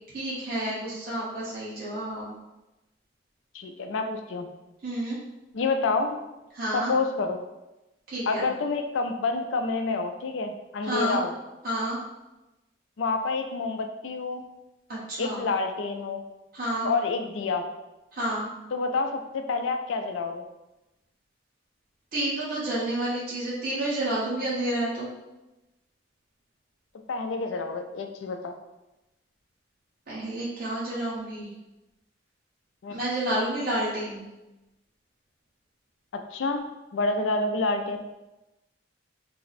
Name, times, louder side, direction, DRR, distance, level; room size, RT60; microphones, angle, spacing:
voice 1, 0.1-2.4 4.8-5.2 6.5-6.9 8.1-8.5 10.8-11.2 11.6-12.0 14.9-15.4 16.5-16.9 18.1-18.5 22.1-25.1 30.1-31.5 32.9-34.2, right 1 dB, 50° right, -8 dB, 1.2 m, -30 dB
voice 2, 3.5-4.5 5.5-6.2 6.7-7.4 8.3-11.3 13.0-14.4 15.2-16.2 16.8-17.6 18.7-20.4 27.1-28.5 32.8-33.0 36.3-36.7 36.9-38.0, left 3 dB, 90° left, 5 dB, 0.4 m, -28 dB
3.4 x 2.0 x 4.0 m, 0.99 s
head